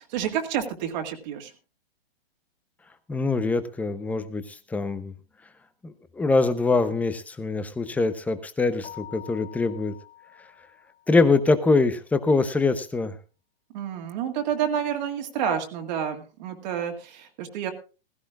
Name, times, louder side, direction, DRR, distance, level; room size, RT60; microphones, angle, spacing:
voice 1, 0.0-1.5 13.7-17.7, right 8 dB, 45° right, 4 dB, 2.1 m, -29 dB
voice 2, 3.1-5.1 5.8-9.9 11.1-13.2, left 3 dB, 5° left, 12 dB, 0.8 m, -24 dB
Keyboard (musical), 8.8-11.3, left 12 dB, 30° left, 1.6 m, -46 dB
16.0 x 16.0 x 2.4 m, 0.32 s
hypercardioid pair, 135°, 31 cm